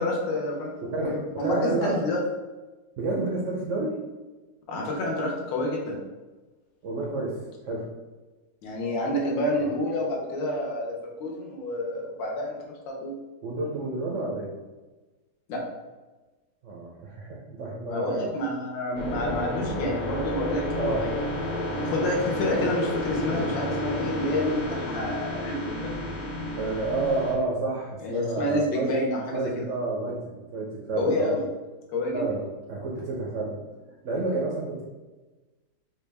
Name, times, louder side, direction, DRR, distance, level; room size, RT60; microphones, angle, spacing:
voice 1, 0.0-0.7 1.0-2.2 4.7-6.0 8.6-13.1 15.5-15.6 17.9-21.2 21.8-25.9 28.0-29.6 31.0-31.4 31.9-32.2, left 1 dB, 80° left, -1 dB, 1.5 m, -28 dB
voice 2, 0.8-2.0 3.0-4.0 6.8-7.9 9.5-9.7 13.4-14.5 16.6-18.3 20.8-21.1 26.5-28.9 29.3-31.3 32.1-33.6 34.0-34.8, right 2 dB, 75° right, -3 dB, 0.6 m, -30 dB
sound 1, 18.9-27.3, equal, 50° left, 1.2 m, -31 dB
4.4 x 2.3 x 3.3 m, 1.2 s
omnidirectional pair, 2.0 m